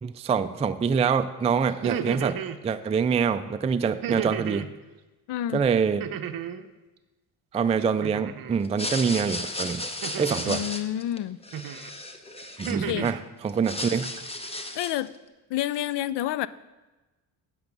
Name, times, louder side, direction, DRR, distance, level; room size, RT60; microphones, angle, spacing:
voice 1, 0.0-2.4 2.6-4.7 5.5-6.1 7.5-9.9 10.2-10.6 12.6-13.2 13.4-14.1, right 6 dB, 15° right, 9 dB, 0.3 m, -25 dB
sound 1, 1.7-2.6 4.0-4.7 6.0-6.7 8.0-8.6 10.0-10.7 11.5-11.9 12.4-13.2, right 8 dB, 50° right, 0.7 m, -33 dB
voice 2, 5.3-5.7 10.5-11.4 12.7-13.1 14.7-15.1 15.5-16.5, left 12 dB, 65° left, 17 dB, 0.5 m, -29 dB
sound 2, 8.6-13.1 13.5-15.1, left 1 dB, 15° left, 0.9 m, -34 dB
8.1 x 7.8 x 5.3 m, 1.1 s
cardioid pair, 80°, 45 cm